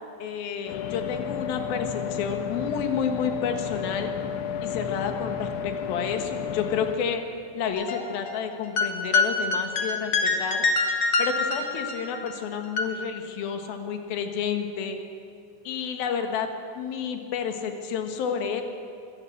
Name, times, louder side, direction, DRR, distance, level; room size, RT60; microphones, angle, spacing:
voice 1, 0.2-4.1 4.6-7.2 7.5-10.7 11.2-15.0 15.6-16.5 16.7-18.6, left 7 dB, 65° left, 6 dB, 2.8 m, -30 dB
sound 1, 0.7-7.0, left 7 dB, 90° left, 3.3 m, -32 dB
sound 2, 7.6-8.4 8.6-12.3 12.6-12.8, left 4 dB, 45° left, 2.1 m, -25 dB
24.0 x 16.0 x 7.9 m, 2.4 s
omnidirectional pair, 5.5 m